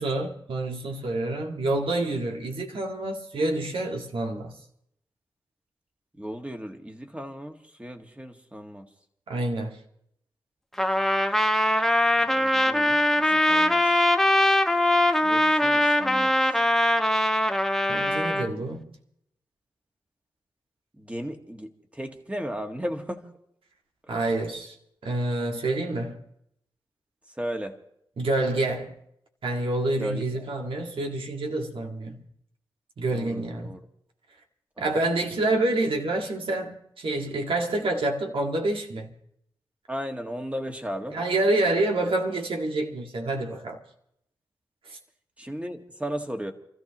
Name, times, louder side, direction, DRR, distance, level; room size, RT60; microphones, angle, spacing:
voice 1, 0.0-4.5 9.3-9.8 17.9-18.9 24.1-24.7 25.0-26.2 28.2-29.0 29.4-32.2 33.0-33.8 34.8-39.1 41.1-43.8 44.9-45.0, right 2 dB, 80° right, 1.9 m, -27 dB
voice 2, 6.2-8.8 12.3-13.9 15.2-16.3 18.4-18.6 21.0-23.2 27.4-27.7 30.0-30.4 33.1-33.8 34.8-34.9 39.9-41.2 45.4-46.5, equal, 15° right, 1.7 m, -35 dB
Trumpet, 10.8-18.5, left 1 dB, 5° left, 0.9 m, -22 dB
28.5 x 14.0 x 3.0 m
cardioid pair, 70°, 9 cm